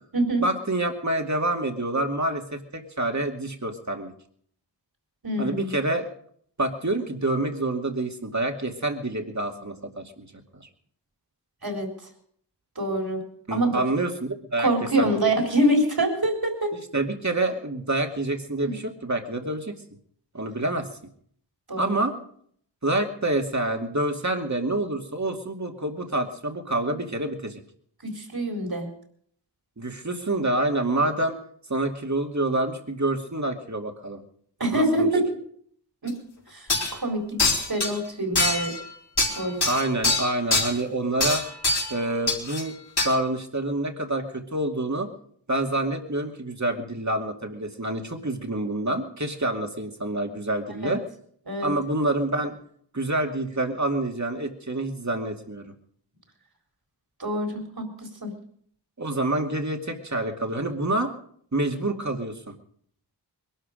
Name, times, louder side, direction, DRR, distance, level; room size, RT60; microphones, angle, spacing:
voice 1, 0.4-4.1 5.4-6.1 6.6-10.3 10.5-10.7 13.5-15.3 16.9-19.8 20.3-20.9 21.8-22.1 22.8-27.6 29.8-31.4 31.7-34.2 34.7-35.1 39.7-41.4 41.9-42.7 43.0-45.1 45.5-51.0 51.6-52.5 52.9-55.6 59.0-61.1 61.5-62.5, right 2 dB, 40° right, 4 dB, 2.3 m, -27 dB
voice 2, 5.2-5.7 11.6-11.9 12.8-13.2 13.5-13.8 14.6-16.7 18.6-18.7 21.7-21.9 28.0-28.9 34.6-35.2 36.0-36.2 36.5-38.7 39.3-39.6 50.8-51.0 51.5-51.7 57.2-58.3, right 1 dB, 60° right, 2 dB, 4.1 m, -25 dB
sound 1, 36.1-36.2 36.7-37.0 37.4-37.9 38.4-38.8 39.2-40.7 41.2-41.9 42.3-42.6 43.0-43.1, left 2 dB, 65° left, 4.1 m, -23 dB
21.5 x 12.5 x 5.1 m, 0.63 s
wide cardioid pair, 50°, 42 cm